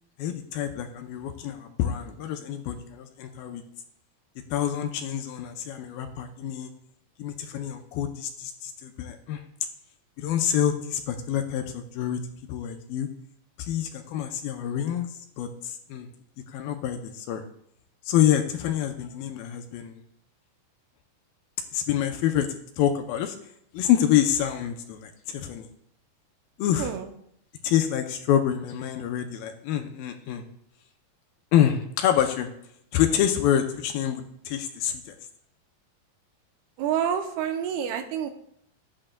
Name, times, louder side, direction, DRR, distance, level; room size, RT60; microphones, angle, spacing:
voice 1, 0.2-3.6 4.5-6.7 7.2-9.4 10.2-12.2 12.5-13.1 13.6-15.1 15.4-16.1 16.5-17.4 18.1-20.0 21.7-23.4 23.7-25.7 26.6-26.9 27.6-30.4 31.5-32.5 32.9-35.2, left 10 dB, 80° left, 5 dB, 2.3 m, -27 dB
voice 2, 36.8-38.3, right 9 dB, 90° right, 6 dB, 2.8 m, -28 dB
13.0 x 8.7 x 2.3 m, 0.73 s
omnidirectional pair, 4.5 m